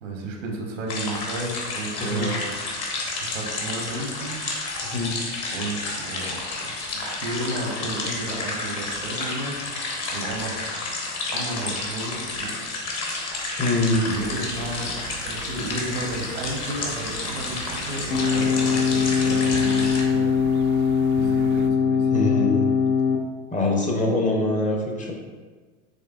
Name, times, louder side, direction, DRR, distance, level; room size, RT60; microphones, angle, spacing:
voice 1, 0.0-2.5 3.2-4.4 5.5-9.6 10.1-10.5 11.3-12.8 14.0-14.9 15.2-20.3 21.2-22.2, right 2 dB, 85° right, 0 dB, 1.1 m, -33 dB
sound 1, 0.9-20.0, left 2 dB, 40° left, 1.1 m, -31 dB
voice 2, 4.8-5.2 13.6-14.0 22.1-22.6 23.5-25.1, left 2 dB, 20° left, 0 dB, 0.7 m, -23 dB
sound 2, 14.1-21.7, right 6 dB, 45° right, 0.4 m, -40 dB
sound 3, 18.1-23.2, left 6 dB, 75° left, 0.8 m, -21 dB
5.4 x 3.3 x 2.4 m, 1.4 s
hypercardioid pair, 95°, 38 cm